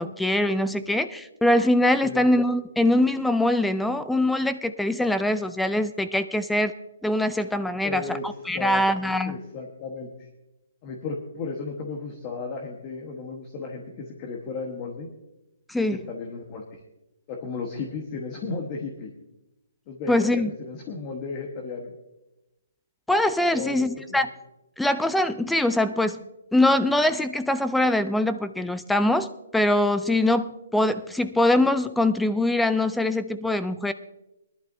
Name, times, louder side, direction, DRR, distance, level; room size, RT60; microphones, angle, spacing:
voice 1, 0.0-6.7 7.0-9.4 15.7-16.0 20.1-20.5 23.1-24.3 24.8-26.2 26.5-33.9, left 1 dB, ahead, 12 dB, 0.3 m, -23 dB
voice 2, 7.8-8.2 8.5-10.1 10.8-15.1 16.1-16.8 17.3-19.1 19.9-21.9 23.5-24.2, left 4 dB, 25° left, 1 dB, 1.2 m, -34 dB
21.5 x 11.5 x 2.7 m, 0.95 s
hypercardioid pair, 165°, 0 cm